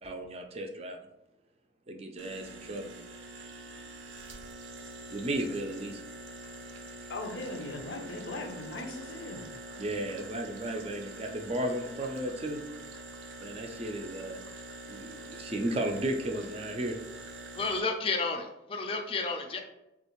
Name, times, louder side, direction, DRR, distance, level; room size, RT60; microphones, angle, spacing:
voice 1, 0.0-1.0 1.9-2.9 5.1-6.0 9.8-12.6 13.4-14.4 14.9-17.0, right 1 dB, 35° right, 4 dB, 0.4 m, -34 dB
sound 1, 2.2-17.8, right 2 dB, 85° right, 0.5 m, -45 dB
voice 2, 7.1-9.5, left 2 dB, 85° left, 5 dB, 0.6 m, -39 dB
voice 3, 17.5-19.6, left 3 dB, 30° left, 3 dB, 0.4 m, -31 dB
3.5 x 2.4 x 2.9 m, 0.91 s
head